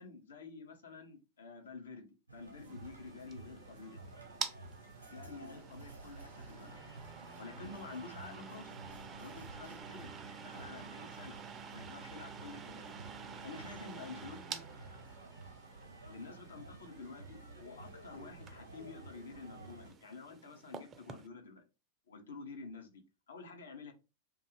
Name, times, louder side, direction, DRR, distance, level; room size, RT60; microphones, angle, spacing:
voice 1, 0.0-4.1 5.0-6.8 7.4-8.7 9.2-10.1 10.4-11.4 11.7-12.9 13.4-14.6 16.0-21.6 22.1-23.9, left 4 dB, 65° left, 4 dB, 0.6 m, -50 dB
sound 1, 2.3-19.9, right 3 dB, 85° right, 0.7 m, -52 dB
sound 2, 2.6-21.3, right 6 dB, 25° right, 0.4 m, -49 dB
2.4 x 2.3 x 3.0 m, 0.29 s
figure-of-eight pair, 90°, 0 cm